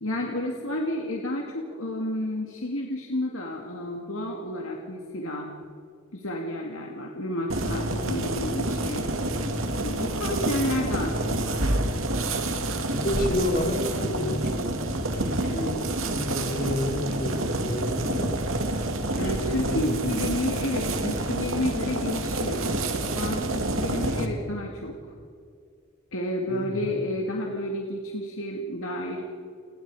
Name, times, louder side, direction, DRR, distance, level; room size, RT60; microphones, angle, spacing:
voice 1, 0.0-5.5 6.1-9.1 9.8-11.8 19.2-22.7 23.1-25.0 26.1-29.2, left 1 dB, 80° left, 0 dB, 2.3 m, -31 dB
sound 1, 7.5-24.3, right 1 dB, 80° right, 2.4 m, -28 dB
voice 2, 12.9-18.3 19.5-20.0 26.5-26.9, left 1 dB, 45° left, 0 dB, 4.5 m, -30 dB
29.5 x 21.0 x 4.9 m, 2.3 s
head